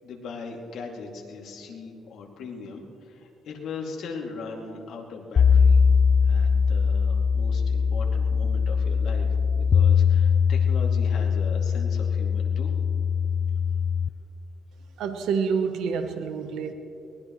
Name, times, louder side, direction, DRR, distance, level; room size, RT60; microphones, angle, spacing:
voice 1, 0.0-5.8 6.2-9.3 9.6-12.8, left 4 dB, 75° left, 0 dB, 2.6 m, -39 dB
sound 1, 5.4-14.1, left 6 dB, 50° left, 0.4 m, -21 dB
voice 2, 15.0-16.7, right 6 dB, 85° right, 6 dB, 1.1 m, -27 dB
23.0 x 20.0 x 3.2 m, 2.8 s
cardioid pair, 90°, 0 cm